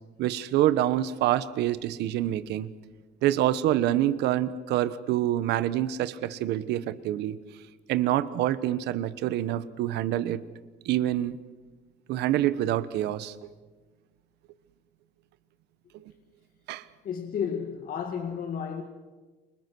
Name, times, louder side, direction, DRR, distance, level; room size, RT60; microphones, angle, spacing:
voice 1, 0.2-2.7 3.2-7.4 7.9-10.4 10.8-11.4 12.1-13.5 15.9-16.0 16.7-16.8, right 13 dB, 80° right, 1.2 m, -26 dB
voice 2, 17.0-18.8, left 7 dB, 55° left, 2.0 m, -32 dB
29.0 x 25.0 x 6.2 m
cardioid pair, 110°, 17 cm